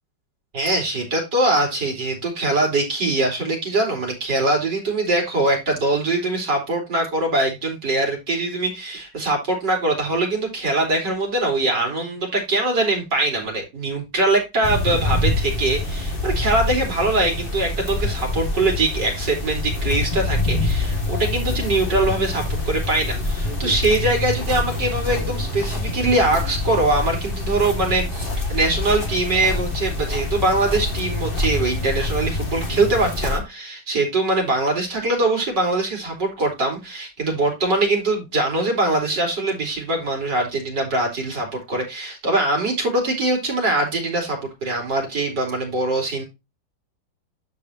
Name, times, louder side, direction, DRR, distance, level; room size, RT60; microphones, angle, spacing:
voice 1, 0.5-46.2, right 2 dB, 55° right, 1 dB, 4.7 m, -22 dB
sound 1, 14.6-33.4, left 2 dB, 25° left, 2.1 m, -25 dB
12.5 x 5.0 x 2.8 m, 0.24 s
omnidirectional pair, 2.2 m